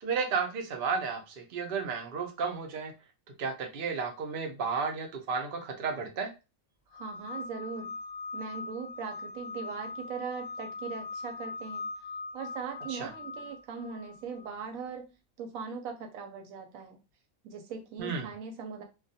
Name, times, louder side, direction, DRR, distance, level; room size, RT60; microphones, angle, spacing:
voice 1, 0.0-2.9 3.4-6.3 12.9-13.1 18.0-18.3, right 5 dB, 55° right, 3 dB, 0.6 m, -33 dB
sound 1, 6.9-14.7, left 3 dB, 50° left, 0.7 m, -41 dB
voice 2, 6.9-8.0 8.3-11.9 12.3-15.1 15.4-17.0 17.4-18.8, right 5 dB, 85° right, 5 dB, 1.0 m, -40 dB
2.4 x 2.2 x 2.7 m, 0.28 s
omnidirectional pair, 1.4 m